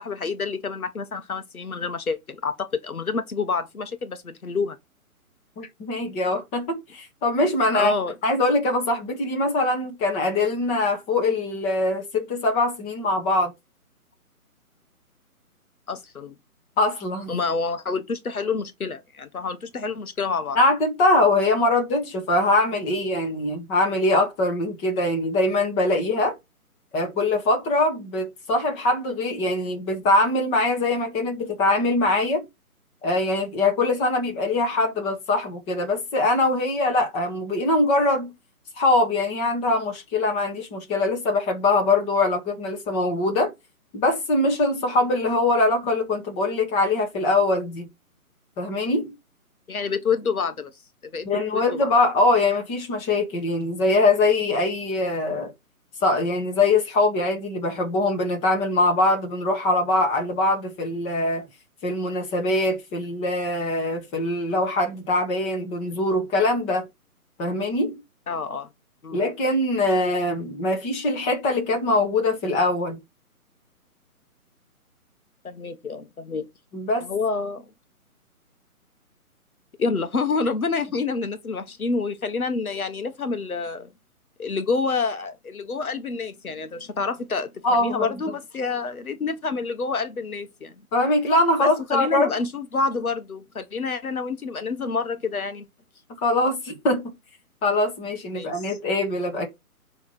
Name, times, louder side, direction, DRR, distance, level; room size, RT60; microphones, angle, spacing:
voice 1, 0.0-4.8 7.7-8.1 15.9-16.3 17.3-20.6 49.7-50.7 51.1-51.3 51.5-51.9 68.3-68.7 69.0-69.2 75.4-76.5 77.0-77.6 79.8-83.9 84.4-90.7 91.6-95.7 98.3-98.8, left 4 dB, 70° left, 1.3 m, -28 dB
voice 2, 5.6-7.9 8.2-13.5 16.8-17.3 20.6-26.3 26.9-32.4 33.0-38.3 38.8-43.5 43.9-47.9 48.6-49.1 51.3-55.5 56.0-61.4 61.8-66.9 67.4-68.0 69.1-73.0 76.7-77.1 87.6-88.1 90.9-92.3 96.2-97.1 97.6-99.5, left 2 dB, 15° left, 1.7 m, -22 dB
10.5 x 3.5 x 4.4 m
figure-of-eight pair, 145°, 44 cm